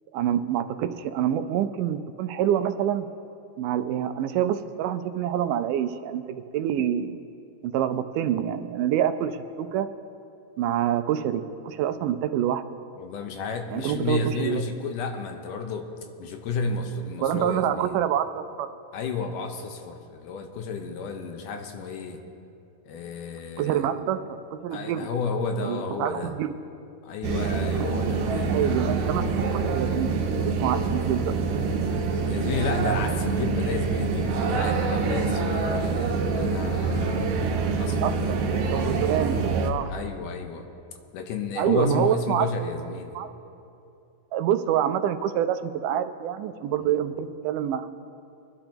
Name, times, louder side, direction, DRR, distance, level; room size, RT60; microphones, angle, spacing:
voice 1, 0.1-3.1 3.6-7.2 7.6-9.9 10.6-12.6 13.7-14.6 17.2-18.7 23.6-25.1 25.6-26.5 28.5-30.1 30.5-31.6 38.0-38.4 38.7-39.9 41.6-42.5 43.2-43.3 44.3-47.9, right 10 dB, 85° right, 10 dB, 2.2 m, -26 dB
voice 2, 13.0-15.9 16.2-18.0 18.9-22.2 22.9-23.9 24.7-26.3 27.0-28.7 32.2-37.4 37.8-38.5 39.9-40.6 41.1-43.2 46.8-46.9, left 4 dB, 85° left, 4 dB, 2.6 m, -32 dB
sound 1, 27.2-39.7, right 4 dB, 70° right, 2.2 m, -26 dB
23.5 x 12.0 x 2.9 m, 2.7 s
omnidirectional pair, 3.6 m